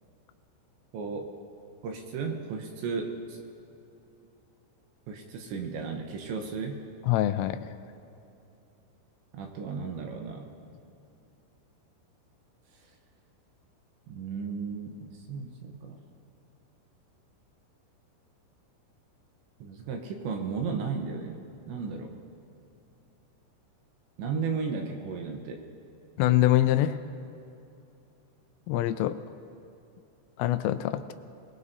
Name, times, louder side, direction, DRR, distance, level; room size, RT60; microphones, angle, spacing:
voice 1, 0.9-1.3 1.8-3.4 5.1-6.8 9.3-10.5 14.1-16.0 19.6-21.4 21.7-22.1 24.2-25.6, right 5 dB, 75° right, 3 dB, 3.0 m, -34 dB
voice 2, 7.1-7.6 26.2-27.0 28.7-29.2 30.4-31.1, left 13 dB, 85° left, 11 dB, 3.0 m, -24 dB
26.0 x 19.5 x 2.7 m, 2.7 s
omnidirectional pair, 5.9 m